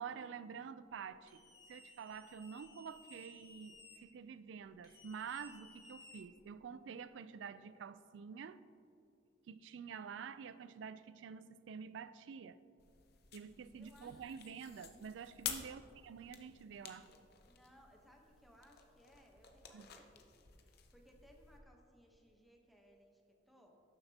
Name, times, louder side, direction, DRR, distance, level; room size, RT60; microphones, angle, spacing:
voice 1, 0.0-1.4 1.7-8.6 9.5-12.6 13.3-17.1 19.7-19.9, right 6 dB, 70° right, 14 dB, 0.3 m, -48 dB
sound 1, 1.3-4.0 4.8-6.6, left 2 dB, 25° left, 1.9 m, -59 dB
sound 2, 12.8-21.6, left 8 dB, 55° left, 0.7 m, -51 dB
voice 2, 13.7-14.3 15.6-16.0 16.5-16.7 17.4-23.8, equal, ahead, 1 dB, 0.9 m, -65 dB
11.5 x 6.6 x 2.8 m, 2.6 s
head